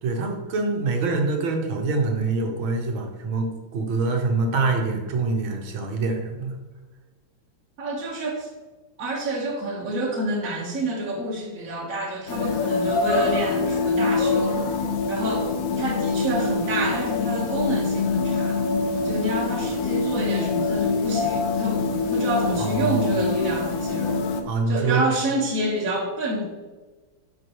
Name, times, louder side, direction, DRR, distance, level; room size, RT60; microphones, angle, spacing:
voice 1, 0.0-6.6 22.6-23.1 24.4-25.1, right 3 dB, 90° right, 2 dB, 1.9 m, -25 dB
voice 2, 7.8-8.5 9.0-14.7 15.1-15.5 15.8-18.6 19.0-24.3 24.7-26.4, right 1 dB, 45° right, -3 dB, 1.8 m, -28 dB
sound 1, 12.3-24.4, left 4 dB, 75° left, 1.5 m, -24 dB
7.9 x 5.4 x 3.1 m, 1.3 s
omnidirectional pair, 2.1 m